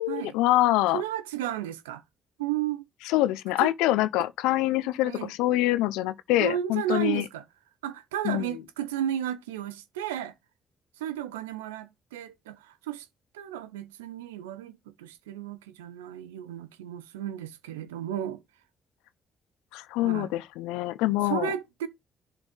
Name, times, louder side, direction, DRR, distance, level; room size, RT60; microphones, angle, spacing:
voice 1, 0.0-1.0 3.1-7.2 8.2-8.5 19.7-21.5, left 16 dB, 80° left, 0.9 m, -25 dB
voice 2, 0.9-2.0 2.4-2.8 3.6-3.7 5.1-5.3 6.4-7.4 7.8-10.3 11.0-13.1 13.3-18.4 20.0-20.3 21.2-21.9, right 11 dB, 90° right, 0.9 m, -33 dB
11.0 x 4.4 x 5.3 m
hypercardioid pair, 45°, 0 cm